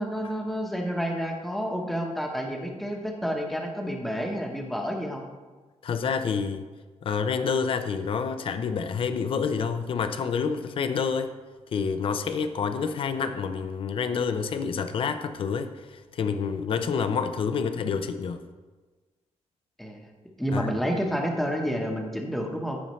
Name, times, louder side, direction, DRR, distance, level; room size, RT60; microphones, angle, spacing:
voice 1, 0.0-5.2 19.8-20.0 20.4-22.8, equal, ahead, 1 dB, 1.0 m, -29 dB
voice 2, 5.8-6.6 7.0-11.4 11.7-18.4 20.5-20.7, left 6 dB, 50° left, 10 dB, 0.5 m, -28 dB
14.5 x 5.5 x 3.1 m, 1.3 s
wide cardioid pair, 165°, 12 cm